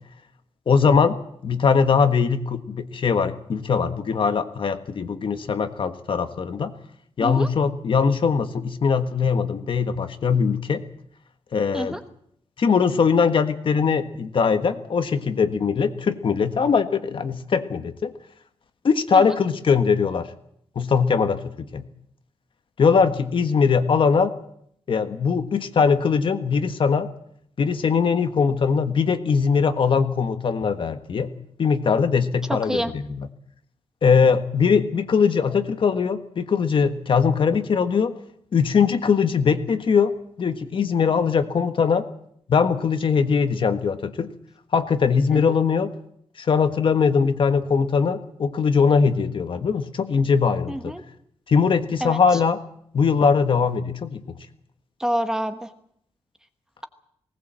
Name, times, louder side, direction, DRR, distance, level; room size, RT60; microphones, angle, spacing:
voice 1, 0.7-1.2 1.4-6.7 7.2-10.8 11.5-12.0 12.6-18.1 18.8-20.3 20.7-21.8 22.8-24.3 24.9-27.1 27.6-31.3 31.6-33.3 34.0-38.1 38.5-42.1 42.5-44.3 44.7-45.9 46.4-50.9 51.5-52.6 52.9-54.2, left 5 dB, 50° left, 8 dB, 1.5 m, -21 dB
voice 2, 50.7-51.0 52.0-52.2 55.0-55.7, equal, 5° right, 8 dB, 1.2 m, -27 dB
19.5 x 18.5 x 7.6 m, 0.68 s
wide cardioid pair, 165°, 11 cm